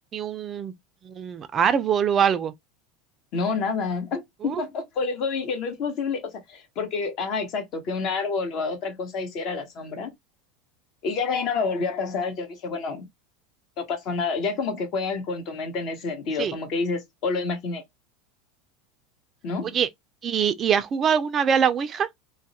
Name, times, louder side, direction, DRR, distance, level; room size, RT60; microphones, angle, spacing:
voice 1, 0.1-0.7 1.0-2.5 4.4-4.6 16.4-16.5 19.7-19.9 20.2-22.1, right 7 dB, 35° right, 0.3 m, -23 dB
voice 2, 3.3-6.2 6.5-10.1 11.0-13.1 13.8-17.8 19.4-19.8, left 4 dB, 55° left, 0.9 m, -28 dB
2.3 x 2.0 x 2.7 m
hypercardioid pair, 105°, 0 cm